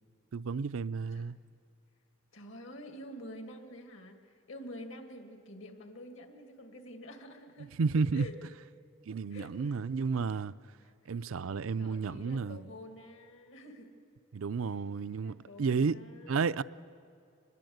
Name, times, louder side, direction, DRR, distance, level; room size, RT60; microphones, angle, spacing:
voice 1, 0.3-1.4 7.8-8.3 9.1-10.5 11.1-12.6 14.3-16.0 16.3-16.6, right 5 dB, 80° right, 0.5 m, -31 dB
voice 2, 2.3-7.7 8.1-8.3 9.3-9.8 11.0-11.1 11.8-13.9 14.7-14.8 15.1-16.4, left 1 dB, 70° left, 2.2 m, -48 dB
24.5 x 21.0 x 8.0 m
head